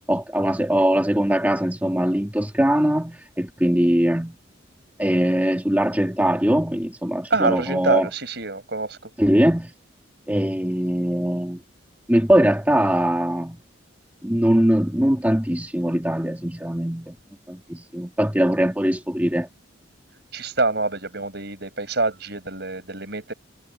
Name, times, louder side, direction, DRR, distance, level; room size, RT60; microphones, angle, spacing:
voice 1, 0.1-4.3 5.0-8.1 9.2-9.7 10.3-11.6 12.1-13.6 14.2-17.1 17.5-19.5, equal, 10° right, 2.2 m, -21 dB
voice 2, 7.3-9.1 20.3-23.3, right 3 dB, 55° right, 6.9 m, -26 dB
head